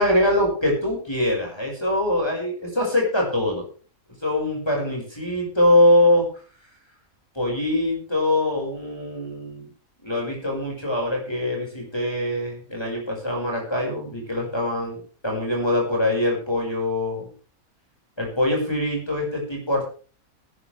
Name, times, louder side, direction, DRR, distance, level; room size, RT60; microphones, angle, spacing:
voice 1, 0.0-3.7 4.2-6.3 7.4-9.7 10.0-17.3 18.2-19.9, left 1 dB, 20° left, -2 dB, 5.4 m, -23 dB
19.0 x 11.5 x 3.4 m, 0.38 s
omnidirectional pair, 1.5 m